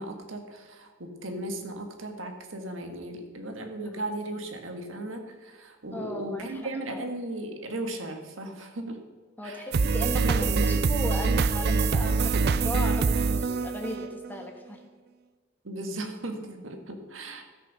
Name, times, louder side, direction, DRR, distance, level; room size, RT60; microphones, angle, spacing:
voice 1, 0.0-9.0 9.4-9.6 10.2-10.8 15.6-17.4, right 1 dB, 85° right, 5 dB, 1.6 m, -36 dB
voice 2, 5.9-7.0 9.4-14.8, left 1 dB, 10° left, 2 dB, 1.4 m, -36 dB
sound 1, 9.7-14.4, right 4 dB, 55° right, 0.4 m, -25 dB
13.0 x 6.4 x 6.2 m, 1.4 s
head